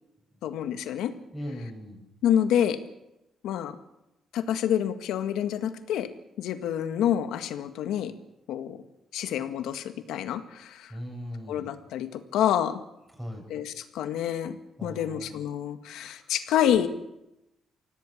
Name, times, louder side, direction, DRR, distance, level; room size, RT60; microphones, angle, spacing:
voice 1, 0.4-1.1 2.2-2.8 3.4-3.8 4.3-6.1 6.4-8.1 8.5-8.8 9.1-10.9 11.5-12.8 13.5-16.9, left 10 dB, 85° left, 8 dB, 1.8 m, -28 dB
voice 2, 1.3-2.0 10.9-11.7 13.2-13.5 14.8-15.3 16.1-16.3, equal, 5° right, 1 dB, 7.4 m, -38 dB
25.0 x 17.0 x 7.4 m, 0.91 s
cardioid pair, 90°, 0 cm